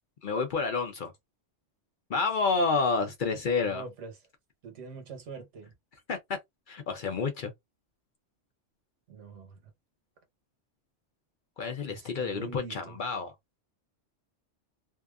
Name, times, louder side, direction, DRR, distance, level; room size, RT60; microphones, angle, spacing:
voice 1, 0.2-1.1 2.1-3.8 6.1-6.4 6.7-7.5 11.6-13.3, left 4 dB, 55° left, 0.6 m, -29 dB
voice 2, 3.6-4.1 4.6-5.7 9.1-9.7 11.8-13.0, right 4 dB, 90° right, 1.2 m, -44 dB
2.7 x 2.4 x 2.3 m
omnidirectional pair, 1.2 m